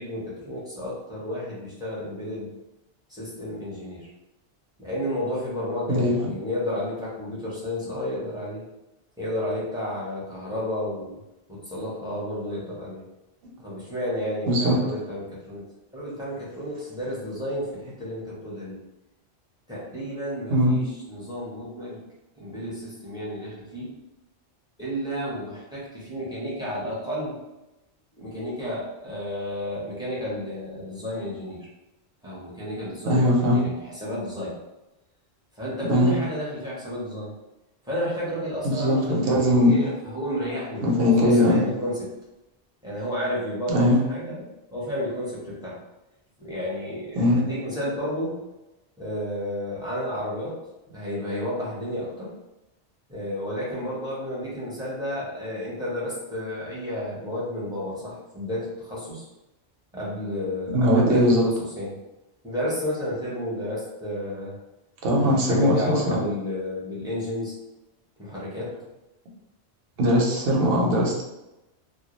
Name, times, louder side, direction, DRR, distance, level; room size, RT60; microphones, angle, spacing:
voice 1, 0.0-2.5 3.1-4.1 4.8-8.6 9.2-11.2 11.5-13.0 13.6-15.6 15.9-18.8 19.7-22.0 22.4-23.9 24.8-27.4 28.2-31.7 32.2-34.6 35.5-37.3 37.8-42.1 42.8-44.5 44.7-45.8 46.4-48.4 49.0-50.6 50.9-52.3 53.1-59.2 59.9-62.0 62.4-64.5 65.2-67.5 68.2-68.8, equal, 5° right, -7 dB, 0.6 m, -31 dB
voice 2, 5.9-6.3 14.5-14.8 20.5-20.8 33.1-33.6 35.9-36.1 38.6-39.8 40.8-41.6 43.7-44.0 47.1-47.4 60.7-61.4 65.0-66.2 70.0-71.2, left 1 dB, 60° right, -2 dB, 0.8 m, -20 dB
2.2 x 2.1 x 2.9 m, 0.97 s
omnidirectional pair, 1.2 m